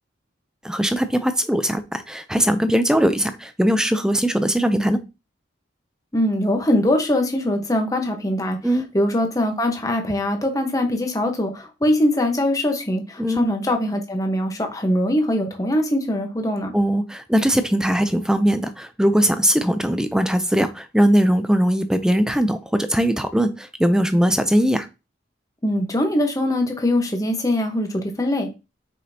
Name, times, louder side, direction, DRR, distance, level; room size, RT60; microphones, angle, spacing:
voice 1, 0.6-5.0 8.6-8.9 13.2-13.4 16.7-24.9, equal, 5° right, 10 dB, 0.4 m, -20 dB
voice 2, 6.1-16.7 25.6-28.5, left 1 dB, 20° left, 4 dB, 1.1 m, -22 dB
6.6 x 5.2 x 2.8 m, 0.28 s
head